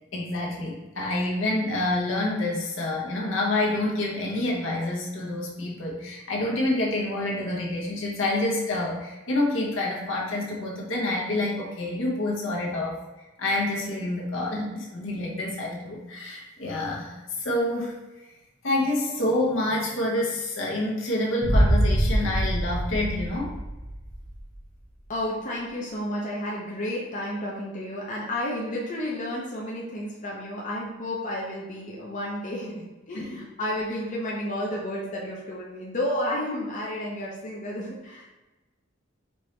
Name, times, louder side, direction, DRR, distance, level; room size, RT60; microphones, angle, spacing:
voice 1, 0.1-13.0 13.4-17.9 18.6-23.5 33.1-33.4, left 1 dB, 70° left, -3 dB, 1.1 m, -27 dB
Boom, 21.4-24.4, right 1 dB, 5° left, 1.0 m, -24 dB
voice 2, 25.1-38.3, left 1 dB, 40° left, -4 dB, 0.7 m, -31 dB
4.5 x 2.9 x 3.2 m, 1.1 s
head